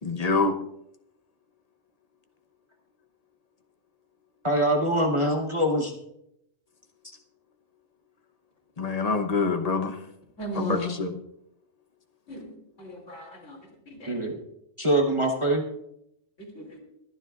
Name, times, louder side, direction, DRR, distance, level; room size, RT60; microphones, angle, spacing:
voice 1, 0.0-0.6 8.8-10.0 10.5-11.2, left 4 dB, 35° left, 6 dB, 0.9 m, -26 dB
voice 2, 4.4-5.9 14.1-14.4 14.8-15.6, right 1 dB, 25° right, 0 dB, 1.1 m, -24 dB
voice 3, 10.4-10.9 12.3-12.5 12.8-13.6 13.9-14.2 16.4-16.8, left 1 dB, 70° left, -1 dB, 3.3 m, -36 dB
22.5 x 9.9 x 2.4 m, 0.79 s
omnidirectional pair, 1.3 m